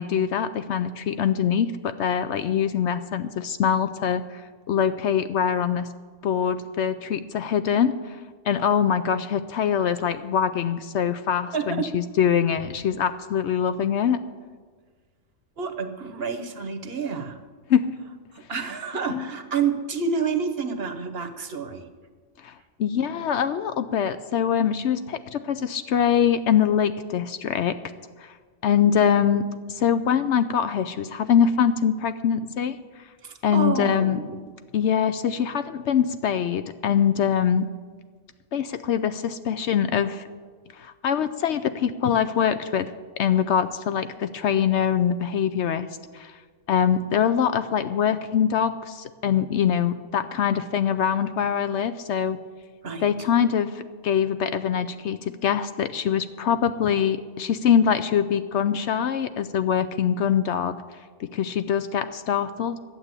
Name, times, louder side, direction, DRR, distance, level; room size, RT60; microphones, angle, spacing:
voice 1, 0.0-4.4 4.7-5.9 6.2-8.2 8.4-14.2 17.7-18.0 19.1-19.2 22.4-22.5 22.8-27.8 28.2-28.3 28.6-29.5 29.7-32.8 33.4-34.2 34.7-37.7 38.5-40.3 40.7-42.9 43.2-45.9 46.1-46.4 46.7-52.4 53.0-60.8 61.2-62.8, left 8 dB, 65° left, 11 dB, 0.8 m, -23 dB
voice 2, 11.5-11.9 15.6-17.4 18.3-21.9 33.2-34.5 52.8-53.1, right 6 dB, 50° right, 7 dB, 1.1 m, -29 dB
11.5 x 8.8 x 8.2 m, 1.5 s
omnidirectional pair, 1.4 m